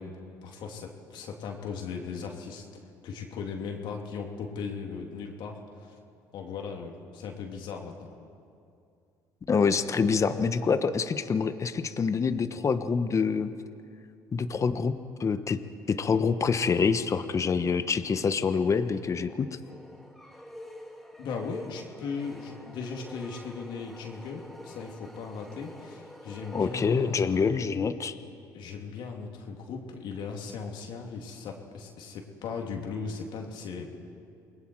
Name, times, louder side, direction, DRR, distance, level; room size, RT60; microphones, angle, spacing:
voice 1, 0.0-2.7 3.0-5.9 6.3-8.1 21.2-27.5 28.5-33.9, left 5 dB, 65° left, 1 dB, 3.1 m, -38 dB
voice 2, 9.5-13.5 14.3-15.6 15.9-19.5 26.5-28.2, left 5 dB, 35° left, 10 dB, 1.2 m, -26 dB
sound 1, 18.5-27.6, equal, ahead, 2.4 m, -48 dB
29.0 x 21.0 x 4.8 m, 2.5 s
supercardioid pair, 70°, 9 cm